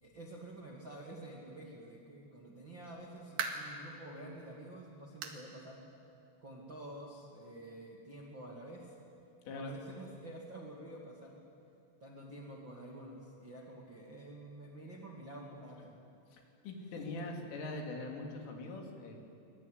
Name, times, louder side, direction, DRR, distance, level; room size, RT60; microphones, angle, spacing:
voice 1, 0.0-5.8 6.4-8.9 9.5-11.4 12.0-15.9 16.9-17.3, right 1 dB, 35° right, -2 dB, 1.9 m, -49 dB
sound 1, 3.0-3.8 4.3-4.4 5.2-5.5 5.8-5.9 6.4-6.5 7.6-7.7, right 5 dB, 55° right, 3.3 m, -40 dB
voice 2, 16.3-19.1, left 2 dB, 70° left, 1 dB, 5.2 m, -42 dB
23.5 x 23.0 x 9.6 m, 2.6 s
omnidirectional pair, 5.9 m